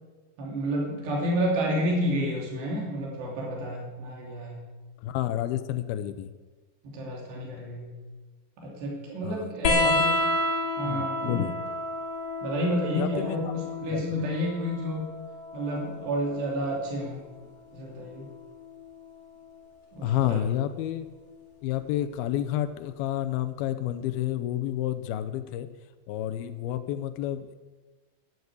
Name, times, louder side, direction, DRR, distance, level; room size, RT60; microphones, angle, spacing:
voice 1, 0.4-4.6 6.8-7.9 8.6-10.0 10.8-11.5 12.4-15.1 15.5-17.2 17.7-18.3 19.9-20.4, equal, 80° right, -3 dB, 5.0 m, -30 dB
voice 2, 5.0-6.3 9.2-10.4 10.8-11.5 13.0-13.5 13.9-14.0 20.0-21.1 21.6-25.7 26.1-27.6, left 12 dB, 80° left, 11 dB, 2.4 m, -30 dB
sound 1, 9.6-16.7 18.1-18.9 20.2-20.3, left 2 dB, 60° left, 3.4 m, -30 dB
12.5 x 11.0 x 8.2 m, 1.3 s
omnidirectional pair, 4.8 m